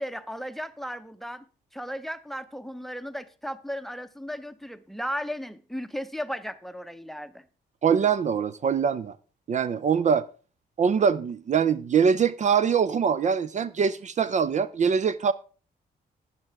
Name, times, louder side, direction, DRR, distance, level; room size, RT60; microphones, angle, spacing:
voice 1, 0.0-1.4 1.7-7.4, equal, ahead, 0.7 m, -35 dB
voice 2, 7.8-9.1 9.5-10.3 10.8-15.3, right 6 dB, 45° right, 0.5 m, -23 dB
12.0 x 9.5 x 3.4 m
cardioid pair, 80°, 17 cm